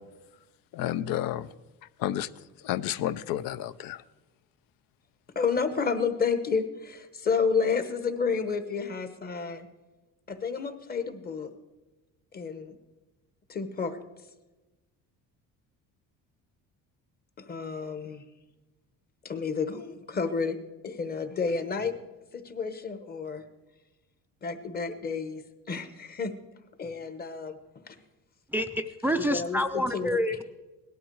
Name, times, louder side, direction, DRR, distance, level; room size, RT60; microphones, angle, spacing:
voice 1, 0.7-1.5 2.0-2.3 2.6-4.0, left 12 dB, 80° left, 17 dB, 0.7 m, -30 dB
voice 2, 5.3-9.7 10.3-11.5 12.3-12.7 13.5-14.0 17.4-18.2 19.2-20.6 20.8-21.9 22.3-23.4 24.4-25.4 25.7-26.3 26.8-27.6 29.2-30.2, left 5 dB, 30° left, 10 dB, 1.1 m, -30 dB
voice 3, 28.5-30.4, equal, 5° right, 9 dB, 0.4 m, -28 dB
18.0 x 12.0 x 4.7 m, 1.1 s
cardioid pair, 155°, 34 cm